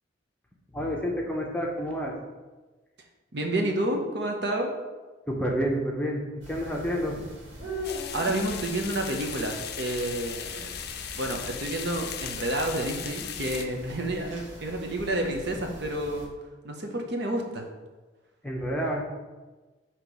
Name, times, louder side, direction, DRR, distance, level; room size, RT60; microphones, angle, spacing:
voice 1, 0.7-2.1 5.3-7.2 18.4-19.0, equal, 5° left, -1 dB, 0.7 m, -29 dB
voice 2, 3.3-4.7 7.8-10.8 11.1-16.3 16.6-17.7, right 1 dB, 60° right, 2 dB, 0.8 m, -30 dB
sound 1, 6.4-16.3, equal, 85° right, 1.8 m, -42 dB
sound 2, 7.8-13.7, left 8 dB, 55° left, 0.5 m, -37 dB
6.5 x 3.0 x 5.2 m, 1.2 s
head